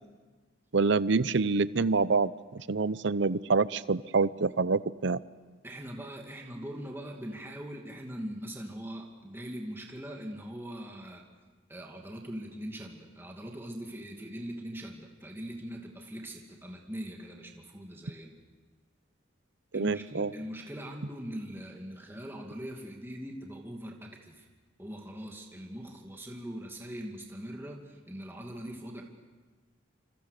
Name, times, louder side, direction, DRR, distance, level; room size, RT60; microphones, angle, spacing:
voice 1, 0.7-5.2 19.7-20.3, right 4 dB, 60° right, 17 dB, 0.7 m, -27 dB
voice 2, 5.6-11.2 11.7-18.3 19.7-24.5 24.8-29.0, equal, 10° right, 0 dB, 2.4 m, -41 dB
27.5 x 26.5 x 6.7 m, 1.3 s
head